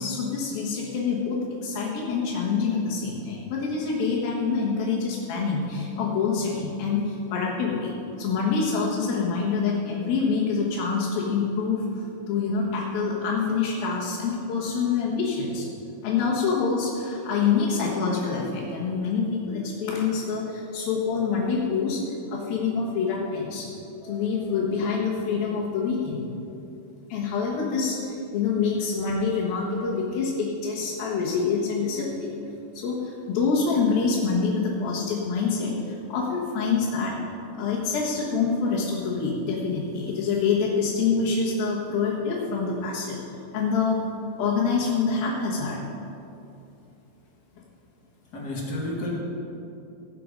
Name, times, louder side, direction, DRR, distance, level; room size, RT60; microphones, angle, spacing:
voice 1, 0.0-15.7 16.0-22.0 22.3-23.7 24.1-26.4 27.1-32.4 32.7-37.1 37.6-43.2 43.5-44.0 44.4-45.8, left 5 dB, 80° left, -6 dB, 3.3 m, -26 dB
voice 2, 24.0-24.5 48.3-49.1, left 1 dB, 35° left, -3 dB, 2.1 m, -32 dB
17.0 x 7.8 x 5.3 m, 2.8 s
omnidirectional pair, 4.1 m